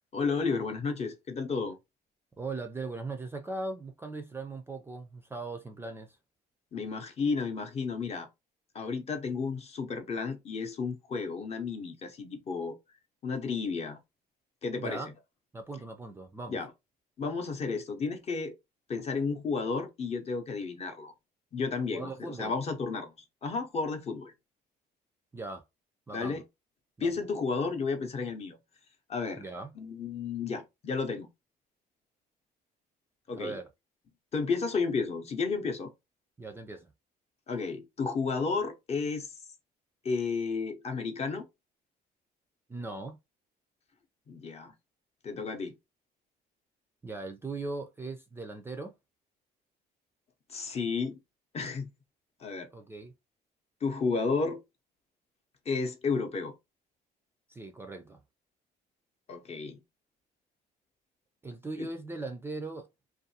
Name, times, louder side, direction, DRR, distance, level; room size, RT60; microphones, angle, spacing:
voice 1, 0.1-1.8 6.7-8.3 8.7-12.8 13.2-14.0 14.6-15.0 16.5-16.7 17.2-18.5 18.9-21.1 21.5-23.1 23.4-24.3 26.1-26.4 27.0-28.6 29.1-29.4 29.8-31.3 33.3-33.6 34.3-35.9 37.5-39.3 40.0-41.5 44.3-44.7 45.2-45.7 50.5-51.2 51.5-51.9 52.4-52.7 53.8-54.6 55.7-56.5 59.3-59.8 61.8-61.9, left 4 dB, 40° left, 0.6 m, -32 dB
voice 2, 2.4-6.2 14.8-15.1 15.5-16.6 21.9-22.5 25.3-25.6 26.1-26.4 27.0-27.2 29.4-29.7 33.3-33.7 36.4-36.9 42.7-43.2 47.0-48.9 52.7-53.1 57.5-58.2 61.4-62.9, right 3 dB, 15° right, 0.4 m, -39 dB
2.5 x 2.3 x 2.7 m
cardioid pair, 110°, 17 cm